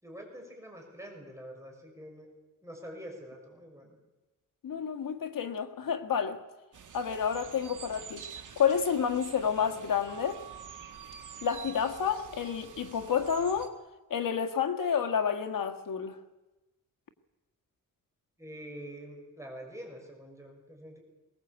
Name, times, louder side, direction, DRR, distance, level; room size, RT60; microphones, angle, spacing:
voice 1, 0.0-2.3 2.6-4.0 7.4-7.5 18.4-21.0, equal, 10° right, 6.5 m, -46 dB
voice 2, 4.6-6.4 6.9-8.2 8.6-10.4 11.4-13.7 14.1-16.2, left 7 dB, 75° left, 1.8 m, -29 dB
sound 1, 6.7-13.7, right 7 dB, 65° right, 2.1 m, -47 dB
21.5 x 19.5 x 8.3 m
wide cardioid pair, 115°, 33 cm